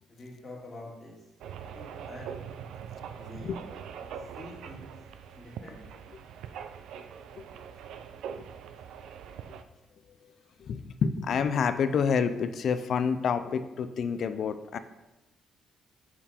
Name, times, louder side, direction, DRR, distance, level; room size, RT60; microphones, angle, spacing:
voice 1, 0.1-1.2 1.7-2.3 3.2-3.5 4.4-4.9 5.4-6.0, left 2 dB, 30° left, -3 dB, 2.2 m, -46 dB
sound 1, 1.4-9.6, right 8 dB, 80° right, 0.4 m, -43 dB
voice 2, 10.7-14.8, left 6 dB, 60° left, 11 dB, 0.4 m, -28 dB
5.4 x 4.5 x 4.3 m, 1.0 s
cardioid pair, 90°, 0 cm